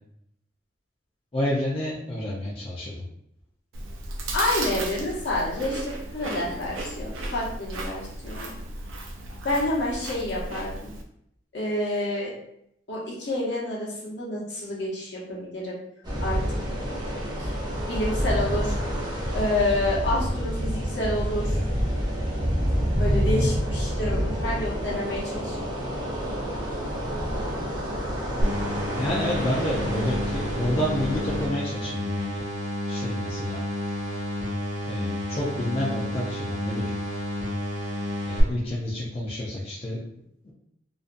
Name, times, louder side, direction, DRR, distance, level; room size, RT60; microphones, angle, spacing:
voice 1, 1.3-3.0 28.9-32.4 32.9-33.6 34.8-36.9 38.3-40.0 40.4-40.5, left 1 dB, 30° left, -6 dB, 0.4 m, -29 dB
Chewing mastication, 3.7-11.0, right 2 dB, 90° right, 0.4 m, -35 dB
voice 2, 4.3-8.5 9.4-10.9 11.5-12.3 12.9-15.8 16.2-16.6 17.4-17.5 17.9-18.8 19.3-21.6 23.0-25.7, left 1 dB, 65° left, -5 dB, 0.8 m, -28 dB
sound 1, 16.0-31.5, equal, 20° right, 0.6 m, -28 dB
sound 2, 28.4-38.4, left 1 dB, 75° right, 1.0 m, -30 dB
2.5 x 2.2 x 2.4 m, 0.75 s
head